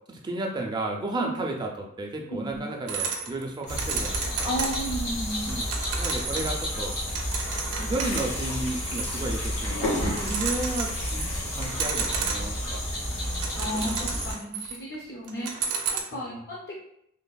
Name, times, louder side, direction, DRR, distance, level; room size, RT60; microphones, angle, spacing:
voice 1, 0.1-4.5 5.5-5.7 6.0-7.0 7.8-12.8 13.7-13.9 16.1-16.5, right 2 dB, 20° right, 1 dB, 0.3 m, -33 dB
sound 1, 2.9-5.0 5.3-9.7 10.0-11.3 11.6-12.7 13.1-15.0 15.3-16.0, right 5 dB, 80° right, 0.4 m, -33 dB
sound 2, 3.7-14.3, equal, 90° left, 1.4 m, -32 dB
voice 2, 4.4-5.5 13.6-16.8, equal, 50° left, -5 dB, 0.5 m, -33 dB
sound 3, 8.0-13.0, left 1 dB, 70° left, 0.9 m, -34 dB
3.2 x 2.0 x 2.2 m, 0.76 s
head